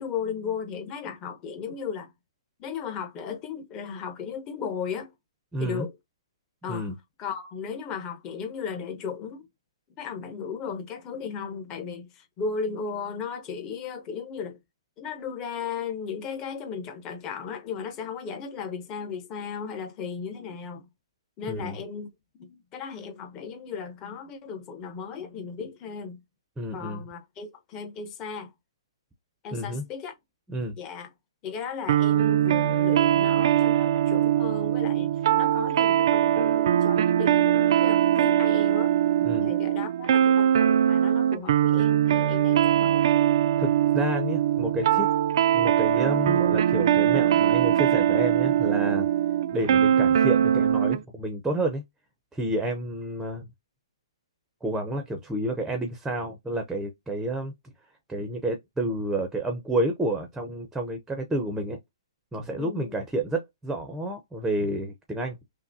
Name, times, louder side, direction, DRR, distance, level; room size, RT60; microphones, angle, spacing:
voice 1, 0.0-2.1 2.6-5.1 5.6-5.9 6.6-6.9 7.2-9.5 10.0-14.6 15.0-20.9 21.4-22.1 22.3-26.2 26.7-28.5 29.4-30.1 30.8-31.1 31.4-39.0 39.4-43.0 49.9-50.0 62.6-63.0, left 6 dB, 20° left, 0.9 m, -36 dB
voice 2, 5.5-5.9 6.7-6.9 21.5-21.8 26.6-27.0 29.5-29.8 30.5-30.8 39.2-39.5 41.0-41.1 43.6-45.1 45.5-49.1 49.5-51.8 52.3-53.5 54.6-57.5 58.1-61.8 62.3-65.4, right 1 dB, 5° right, 0.7 m, -30 dB
sound 1, 31.9-51.0, right 10 dB, 55° right, 0.4 m, -22 dB
5.6 x 2.1 x 2.7 m
hypercardioid pair, 155°, 3 cm